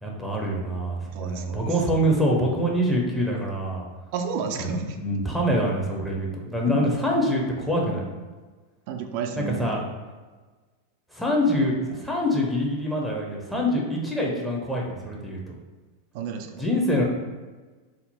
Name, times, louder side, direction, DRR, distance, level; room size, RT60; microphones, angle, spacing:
voice 1, 0.0-3.8 4.6-4.7 5.0-8.0 9.4-9.8 11.1-15.5 16.6-17.0, equal, 5° left, -3 dB, 0.7 m, -25 dB
voice 2, 1.1-1.7 4.1-5.0 6.7-6.8 8.9-9.7 16.1-16.6, right 6 dB, 45° right, 5 dB, 0.4 m, -31 dB
3.6 x 2.0 x 4.1 m, 1.3 s
figure-of-eight pair, 90°, 0 cm